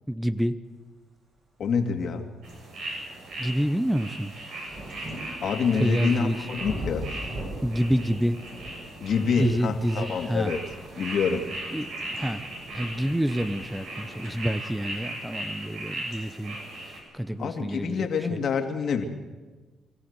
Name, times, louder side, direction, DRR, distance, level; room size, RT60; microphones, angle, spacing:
voice 1, 0.1-0.6 3.4-4.3 5.8-6.4 7.6-8.4 9.4-10.5 11.7-12.4 12.7-16.6 16.8-18.4, equal, 5° right, 12 dB, 0.7 m, -28 dB
voice 2, 1.6-2.3 5.4-7.1 9.0-10.6 11.0-11.5 17.4-19.1, left 6 dB, 60° left, 5 dB, 2.4 m, -26 dB
sound 1, 1.8-1.9 2.5-17.1 18.0-18.1, equal, 45° right, 7.0 m, -42 dB
sound 2, 2.4-17.0, right 1 dB, 75° right, 7.0 m, -38 dB
24.5 x 14.5 x 8.2 m, 1.3 s
cardioid pair, 90°, 0 cm